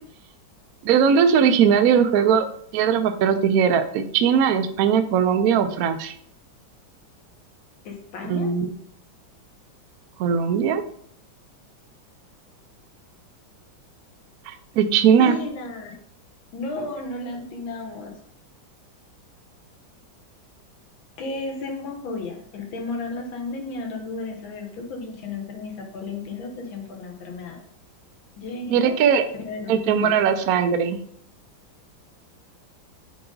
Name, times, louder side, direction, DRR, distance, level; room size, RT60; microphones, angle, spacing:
voice 1, 0.8-2.5 2.7-6.1 8.2-8.7 10.2-10.8 14.5-15.4 28.7-29.2 29.7-31.0, right 7 dB, 75° right, 8 dB, 0.8 m, -19 dB
voice 2, 7.9-8.6 15.2-15.9 16.5-18.1 21.2-27.6 28.4-29.0 29.5-30.2, left 3 dB, 85° left, 2 dB, 1.9 m, -33 dB
6.8 x 3.9 x 3.8 m, 0.63 s
omnidirectional pair, 2.1 m